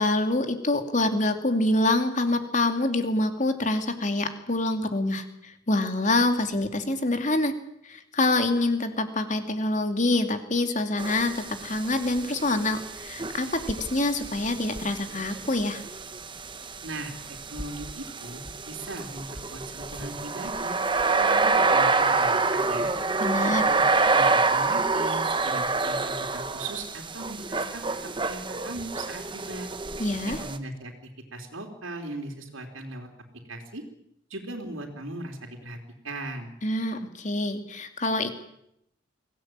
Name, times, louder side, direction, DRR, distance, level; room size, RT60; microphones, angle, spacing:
voice 1, 0.0-7.5 7.8-15.8 23.2-23.6 30.0-30.4 36.6-38.3, left 2 dB, 40° left, 7 dB, 2.6 m, -26 dB
sound 1, 11.0-30.6, right 3 dB, 25° right, 1.3 m, -27 dB
voice 2, 16.8-17.1 17.5-20.8 21.2-22.9 23.4-23.8 24.1-27.8 28.3-29.7 30.4-30.9 31.3-33.1 33.5-33.8 34.3-35.8 36.0-36.5, right 2 dB, 85° right, 2 dB, 3.5 m, -38 dB
23.5 x 17.5 x 9.0 m, 0.78 s
head